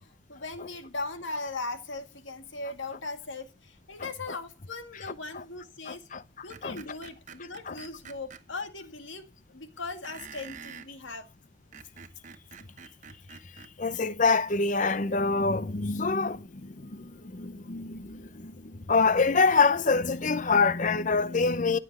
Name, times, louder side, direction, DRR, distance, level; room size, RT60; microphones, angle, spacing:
voice 1, 0.0-6.1 6.4-11.3, left 3 dB, 70° left, 2.0 m, -39 dB
voice 2, 4.0-4.4 5.3-5.4 5.9-6.2 6.6-6.8 7.7-7.8 13.8-21.8, left 4 dB, 40° left, 0.7 m, -26 dB
Screech, 6.5-8.4 10.0-10.9 11.5-13.7, right 6 dB, 40° right, 1.0 m, -47 dB
15.5 x 7.6 x 6.1 m
head